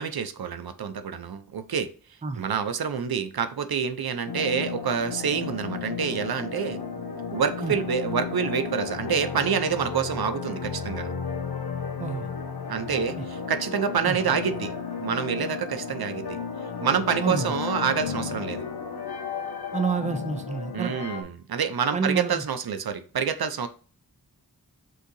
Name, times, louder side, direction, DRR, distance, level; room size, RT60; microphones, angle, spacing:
voice 1, 0.0-1.9 2.4-6.8 7.3-11.1 12.7-14.7 15.0-16.4 16.8-18.7 20.7-23.7, right 7 dB, 75° right, 10 dB, 0.5 m, -27 dB
sound 1, 4.3-21.2, left 6 dB, 90° left, 0.8 m, -33 dB
voice 2, 19.7-20.9 21.9-22.4, right 5 dB, 20° right, 9 dB, 0.4 m, -28 dB
6.4 x 2.7 x 2.6 m, 0.39 s
wide cardioid pair, 65°, 38 cm